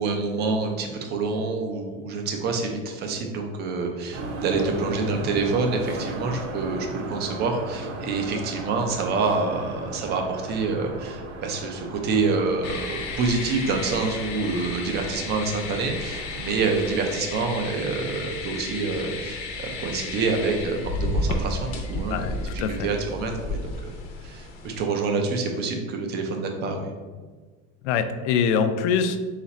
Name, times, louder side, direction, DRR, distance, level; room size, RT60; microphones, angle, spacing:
voice 1, 0.0-23.9 24.2-26.9, right 4 dB, 30° right, 3 dB, 0.5 m, -27 dB
sound 1, 4.1-17.2, right 2 dB, 80° right, 0.9 m, -37 dB
sound 2, 12.6-24.8, left 2 dB, 40° left, 0.6 m, -33 dB
voice 2, 22.1-22.9 27.8-29.2, left 6 dB, 85° left, 9 dB, 0.5 m, -24 dB
4.0 x 2.5 x 4.1 m, 1.4 s
cardioid pair, 165°, 34 cm